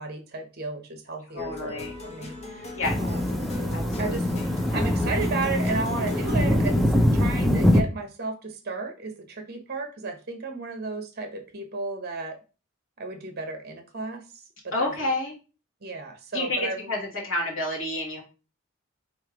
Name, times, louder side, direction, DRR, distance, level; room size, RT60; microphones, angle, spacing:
voice 1, 0.0-2.7 3.0-3.3 4.0-4.3 4.7-12.4 13.0-14.2 14.6-15.1 15.8-16.9, right 3 dB, 50° right, 6 dB, 1.0 m, -33 dB
voice 2, 1.3-1.9 2.7-3.0 3.7-4.4 14.7-15.3 16.3-17.0 17.2-18.2, left 2 dB, 65° left, -3 dB, 1.7 m, -29 dB
Gangsta Christmas, 1.4-6.4, left 2 dB, 30° left, 0.8 m, -39 dB
sound 1, 2.8-7.8, left 1 dB, ahead, 0.5 m, -23 dB
3.3 x 3.2 x 4.8 m, 0.33 s
head